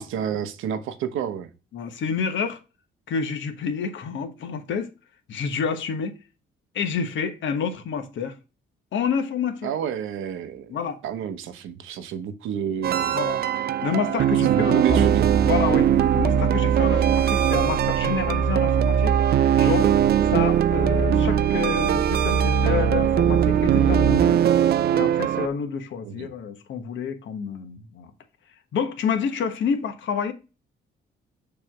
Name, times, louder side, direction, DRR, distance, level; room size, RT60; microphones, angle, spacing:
voice 1, 0.0-1.5 9.6-10.7 11.0-13.2 14.5-15.3 26.0-26.3, right 8 dB, 85° right, 0.9 m, -30 dB
voice 2, 1.7-2.6 3.1-4.9 5.3-6.2 6.7-8.4 8.9-9.7 10.7-11.0 13.1-13.4 13.8-15.1 15.4-19.2 19.5-19.9 20.3-24.4 24.9-28.1 28.7-30.3, left 6 dB, 70° left, 1.2 m, -28 dB
sound 1, 12.8-25.5, right 10 dB, 55° right, 0.4 m, -21 dB
sound 2, 14.9-24.2, right 5 dB, 35° right, 1.2 m, -25 dB
6.8 x 3.2 x 5.8 m
cardioid pair, 90°, 20 cm